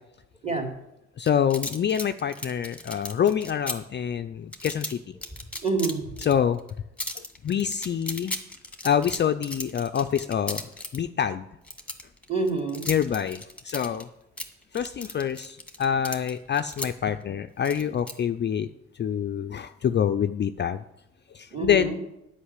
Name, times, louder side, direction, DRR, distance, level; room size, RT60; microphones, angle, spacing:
voice 1, 1.2-5.0 6.3-6.6 7.2-8.4 8.8-10.6 10.9-11.5 12.9-14.1 14.7-18.7 19.0-20.8 21.3-22.0, left 8 dB, 35° left, 9 dB, 0.4 m, -26 dB
sound 1, 1.3-3.8 4.5-4.9 5.2-6.3 6.6-6.7 7.0-11.0 11.6-14.0 14.4-16.9 17.6-18.1, left 1 dB, 5° left, 1.5 m, -35 dB
voice 2, 5.6-6.3 12.3-12.9 21.5-22.0, right 3 dB, 20° right, 1 dB, 2.8 m, -27 dB
9.8 x 5.5 x 8.2 m, 0.88 s
cardioid pair, 90°, 30 cm